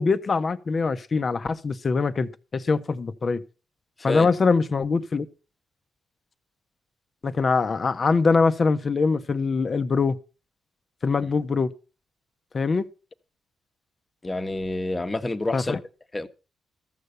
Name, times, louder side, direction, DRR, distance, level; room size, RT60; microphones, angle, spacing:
voice 1, 0.0-3.4 4.0-5.3 7.2-10.2 11.0-11.7 12.5-12.8 15.5-15.8, left 4 dB, 45° left, 1.0 m, -23 dB
voice 2, 4.0-4.3 14.2-15.7 16.1-16.3, left 2 dB, 25° left, 1.3 m, -28 dB
14.0 x 6.7 x 6.8 m
supercardioid pair, 55°, 0 cm